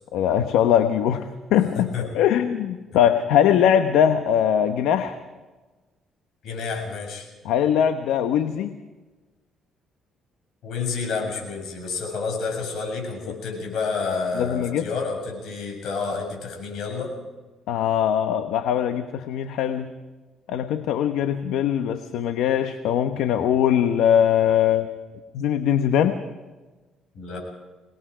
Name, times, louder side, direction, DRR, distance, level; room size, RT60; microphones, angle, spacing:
voice 1, 0.1-5.2 7.4-8.8 14.4-14.8 17.7-19.9 20.5-24.9 25.3-26.2, left 9 dB, 90° left, 8 dB, 1.0 m, -21 dB
voice 2, 1.7-2.1 6.4-7.3 10.6-17.1 27.1-27.4, left 4 dB, 70° left, 2 dB, 7.5 m, -29 dB
26.0 x 20.0 x 5.1 m, 1.2 s
cardioid pair, 100°, 0 cm